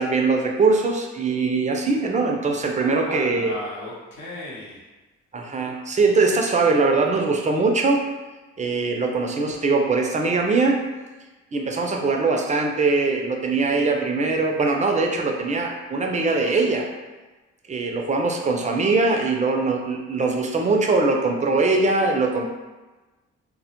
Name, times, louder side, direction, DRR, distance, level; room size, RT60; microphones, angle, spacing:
voice 1, 0.0-3.5 5.3-8.0 8.6-10.8 11.5-16.9 17.7-22.5, right 3 dB, 25° right, 2 dB, 0.4 m, -21 dB
voice 2, 2.7-4.8, left 1 dB, 65° left, -5 dB, 0.8 m, -35 dB
2.1 x 2.0 x 2.8 m, 1.2 s
supercardioid pair, 55°, 33 cm